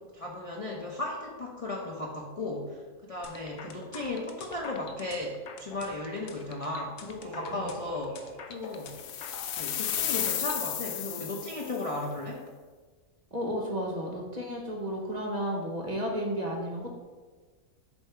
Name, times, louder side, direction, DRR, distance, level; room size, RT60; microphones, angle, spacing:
voice 1, 0.0-9.0 9.5-12.4, left 2 dB, 40° left, -3 dB, 0.5 m, -36 dB
sound 1, 3.2-10.6, left 5 dB, 65° left, 0.8 m, -46 dB
Singing, 7.2-9.2, right 4 dB, 70° right, 0.9 m, -46 dB
sound 2, 8.9-11.9, left 9 dB, 90° left, 1.0 m, -33 dB
voice 2, 13.3-16.9, equal, 40° right, 0 dB, 0.8 m, -33 dB
6.9 x 2.7 x 5.5 m, 1.4 s
omnidirectional pair, 1.4 m